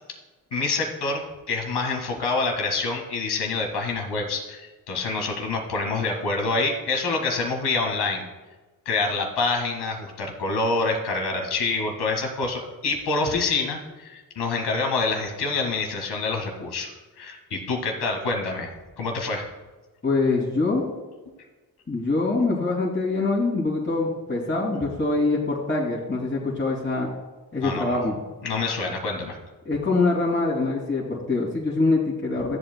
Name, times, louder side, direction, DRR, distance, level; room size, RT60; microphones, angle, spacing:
voice 1, 0.5-8.3 8.9-16.9 17.2-18.7 19.0-19.5 27.6-28.0 28.4-29.4, left 3 dB, 80° left, 2 dB, 1.8 m, -26 dB
voice 2, 20.0-20.9 21.9-27.1 27.5-28.2 29.6-32.6, left 3 dB, 30° left, -5 dB, 2.8 m, -24 dB
13.5 x 7.9 x 2.2 m, 1.3 s
supercardioid pair, 55°, 39 cm